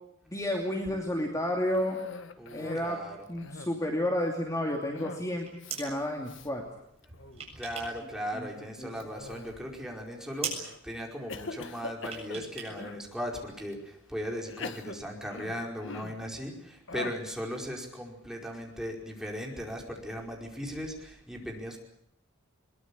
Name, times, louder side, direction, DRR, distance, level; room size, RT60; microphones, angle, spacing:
voice 1, 0.3-2.0 2.5-3.0 3.3-5.5 5.7-6.6 8.0-8.5 8.8-8.9, left 1 dB, 15° left, 1 dB, 2.8 m, -31 dB
Cough, 1.7-2.9 3.3-3.9 5.0-5.3 5.6-5.8 6.3-6.5 7.0-7.5 9.0-9.8 10.4-10.8 11.3-13.1 13.7-13.8 14.5-16.3 16.9-17.3, left 3 dB, 65° left, 1.6 m, -43 dB
voice 2, 2.4-3.2 7.6-21.8, equal, 5° right, 0 dB, 5.0 m, -38 dB
sound 1, 5.2-5.9 7.0-8.1 8.3-9.2 9.6-9.7 10.0-10.1 10.4-10.7 12.0-12.7 13.0-13.1, right 6 dB, 30° right, 7.2 m, -39 dB
22.5 x 22.0 x 8.7 m, 0.77 s
head